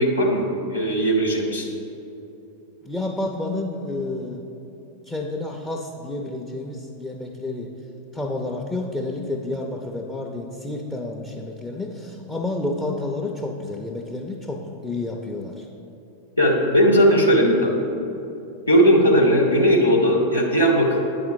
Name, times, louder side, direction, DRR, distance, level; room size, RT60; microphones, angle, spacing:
voice 1, 0.0-1.7 16.4-17.7 18.7-21.0, equal, 80° left, 0 dB, 0.8 m, -18 dB
voice 2, 2.8-4.4 5.1-7.7 8.1-15.7, left 2 dB, 10° left, -1 dB, 0.5 m, -30 dB
9.3 x 3.9 x 4.7 m, 2.9 s
figure-of-eight pair, 90°, 0 cm